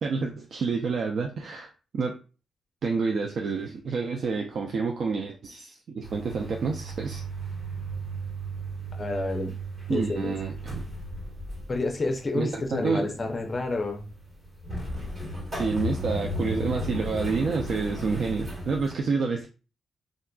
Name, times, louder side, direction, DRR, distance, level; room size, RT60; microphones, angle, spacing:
voice 1, 0.0-2.2 2.8-7.2 9.9-10.8 12.3-13.1 15.5-19.5, right 4 dB, 65° right, 2 dB, 0.4 m, -29 dB
sound 1, 6.0-18.9, right 1 dB, 40° right, 1.4 m, -35 dB
voice 2, 8.9-9.5 9.9-10.4 11.7-14.0, left 2 dB, 35° left, 4 dB, 0.5 m, -29 dB
3.7 x 2.4 x 2.2 m, 0.34 s
cardioid pair, 95°, 0 cm